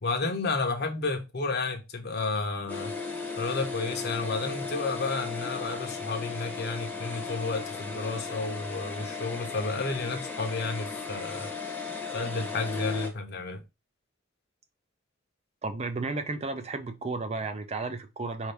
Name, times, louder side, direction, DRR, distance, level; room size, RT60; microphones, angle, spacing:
voice 1, 0.0-2.9 3.4-11.5 12.1-13.6, left 3 dB, 55° left, 0.9 m, -31 dB
sound 1, 2.7-13.1, left 4 dB, 10° left, 0.9 m, -36 dB
voice 2, 15.6-18.5, right 3 dB, 35° right, 0.5 m, -33 dB
4.7 x 2.8 x 3.3 m
head